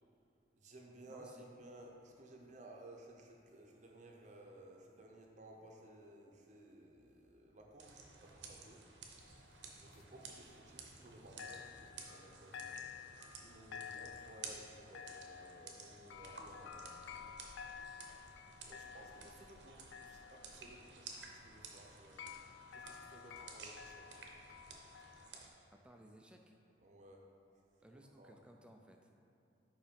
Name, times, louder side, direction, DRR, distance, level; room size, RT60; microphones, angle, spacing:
voice 1, 0.6-8.8 9.8-17.0 18.7-22.3 22.7-24.3 26.8-27.2 28.2-28.3, right 1 dB, 40° right, 0 dB, 0.7 m, -57 dB
voice 2, 1.1-1.4 19.2-19.6 25.7-26.5 27.8-29.1, right 1 dB, 5° right, 2 dB, 0.4 m, -60 dB
sound 1, 7.8-25.5, right 4 dB, 70° right, 0.8 m, -54 dB
sound 2, 9.2-11.1 11.4-25.3, left 7 dB, 80° left, 0.3 m, -53 dB
5.3 x 4.7 x 5.2 m, 2.6 s
head